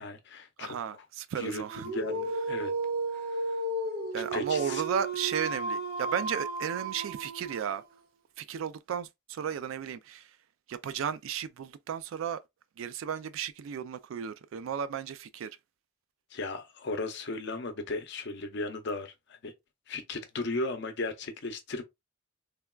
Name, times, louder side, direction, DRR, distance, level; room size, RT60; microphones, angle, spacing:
voice 1, 0.0-0.8 1.4-1.6 1.9-2.7 3.1-3.6 4.3-4.8 16.3-19.5 19.9-21.8, left 2 dB, 60° left, 0.6 m, -36 dB
voice 2, 0.6-1.9 4.1-7.8 8.4-10.3 10.7-12.4 12.8-15.5, right 7 dB, 70° right, 0.3 m, -34 dB
Dog, 1.6-7.9, right 2 dB, 50° right, 0.7 m, -34 dB
3.3 x 2.3 x 2.2 m
head